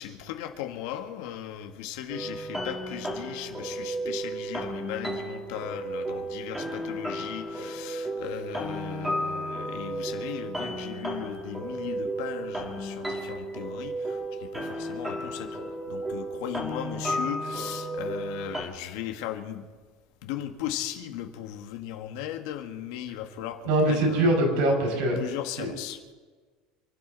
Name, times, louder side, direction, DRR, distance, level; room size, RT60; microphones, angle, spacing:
voice 1, 0.0-15.6 15.9-19.7 20.2-24.4 25.2-26.0, left 11 dB, 65° left, 6 dB, 1.7 m, -37 dB
sound 1, 2.1-18.6, right 1 dB, 5° right, 2.3 m, -33 dB
voice 2, 23.7-25.2 25.6-25.7, right 1 dB, 60° right, 1 dB, 5.8 m, -23 dB
28.5 x 12.5 x 4.1 m, 1.4 s
cardioid pair, 180°, 3 cm